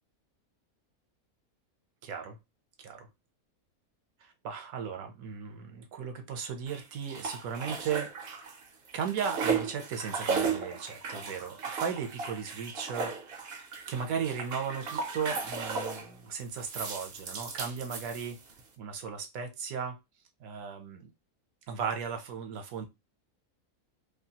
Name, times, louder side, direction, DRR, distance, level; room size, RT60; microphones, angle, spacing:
voice 1, 2.0-2.4 2.8-3.1 4.2-8.1 8.9-18.4 18.8-20.0 20.4-21.1 21.7-22.9, right 6 dB, 75° right, 5 dB, 1.1 m, -36 dB
sound 1, 6.7-8.6 8.9-16.1 16.6-18.6, right 5 dB, 55° right, 0.7 m, -35 dB
2.7 x 2.3 x 2.7 m, 0.22 s
omnidirectional pair, 1.5 m